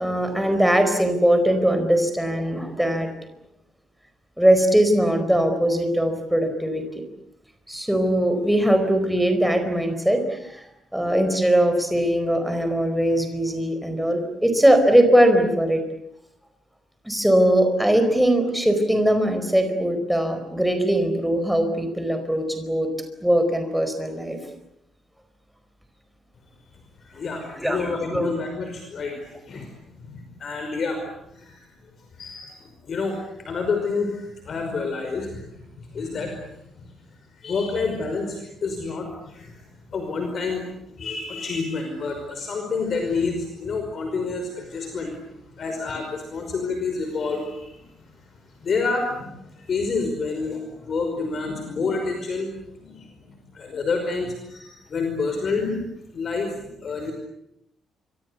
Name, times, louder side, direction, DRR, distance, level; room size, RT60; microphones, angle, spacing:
voice 1, 0.0-3.1 4.4-6.8 7.7-10.6 10.9-15.8 17.0-22.9 23.2-24.4 27.5-28.3, right 1 dB, ahead, 6 dB, 4.6 m, -20 dB
voice 2, 27.1-29.7 30.1-31.0 31.3-31.7 32.2-32.6 32.8-36.4 36.8-36.9 37.4-39.6 39.9-40.6 41.0-45.2 45.6-47.9 48.6-52.5 52.8-55.8 56.1-57.1, left 4 dB, 40° left, 4 dB, 5.4 m, -28 dB
28.0 x 25.0 x 8.3 m, 0.81 s
cardioid pair, 165°, 0 cm